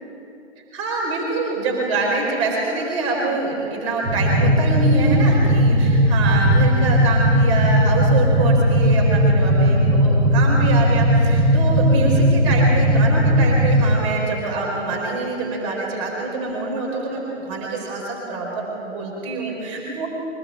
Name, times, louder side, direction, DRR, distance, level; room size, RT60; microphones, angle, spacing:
voice 1, 0.7-20.1, right 3 dB, 25° right, -2 dB, 4.6 m, -25 dB
sound 1, 4.0-13.8, equal, 5° right, 7.3 m, -17 dB
24.0 x 19.0 x 8.0 m, 2.8 s
figure-of-eight pair, 140°, 36 cm